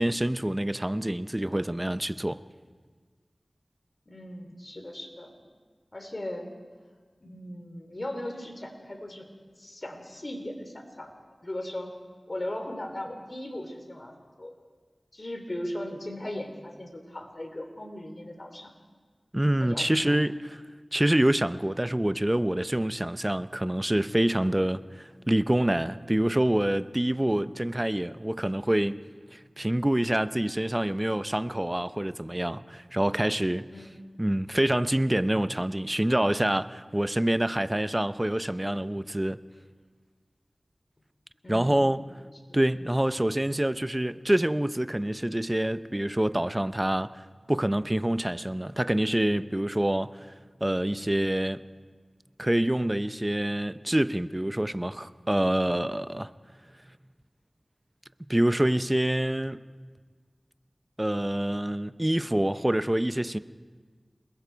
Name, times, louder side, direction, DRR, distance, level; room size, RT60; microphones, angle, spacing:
voice 1, 0.0-2.4 19.3-20.6 20.9-29.0 29.3-33.7 34.2-39.4 41.5-42.0 42.5-47.2 47.5-50.3 50.6-51.6 52.4-56.3 58.3-59.6 61.0-63.4, right 1 dB, 20° right, 0.6 m, -26 dB
voice 2, 4.1-5.3 5.9-6.5 7.2-9.3 9.6-11.1 11.4-11.9 12.3-14.5 15.1-18.7 19.6-19.9 33.7-33.9 41.4-42.0 42.5-42.6, left 1 dB, 45° left, 3.3 m, -38 dB
28.0 x 21.0 x 4.6 m
wide cardioid pair, 45°, 0 cm